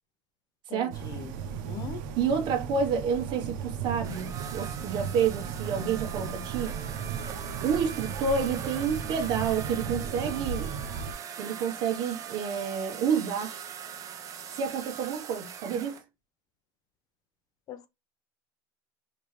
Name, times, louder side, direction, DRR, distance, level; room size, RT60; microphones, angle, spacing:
voice 1, 0.7-1.3 1.6-2.1 17.7-17.9, left 7 dB, 40° left, 0.8 m, -40 dB
sound 1, 0.9-11.1, right 7 dB, 90° right, 0.8 m, -36 dB
voice 2, 2.2-6.7 7.6-10.7 11.4-13.5 14.5-16.0, right 6 dB, 50° right, 1.4 m, -29 dB
sound 2, 4.0-16.0, right 8 dB, 35° right, 0.8 m, -41 dB
5.1 x 2.9 x 3.3 m
cardioid pair, 150°, 10 cm